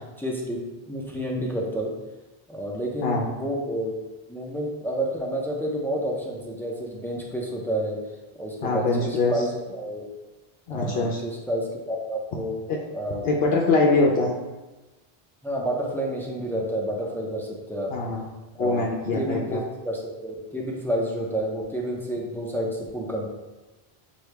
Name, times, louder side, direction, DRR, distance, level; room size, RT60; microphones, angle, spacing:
voice 1, 0.2-0.6 0.9-1.9 2.5-3.9 4.3-8.0 8.3-10.1 10.7-12.6 12.9-13.2 15.4-17.9 18.6-18.9 19.2-19.6 19.8-23.3, right 1 dB, 5° left, -2 dB, 0.5 m, -29 dB
voice 2, 8.6-9.3 10.7-11.2 12.7-12.8 13.2-14.3 17.9-18.2 18.6-19.6, left 3 dB, 75° left, -1 dB, 0.8 m, -23 dB
6.3 x 2.2 x 3.3 m, 1.1 s
omnidirectional pair, 1.0 m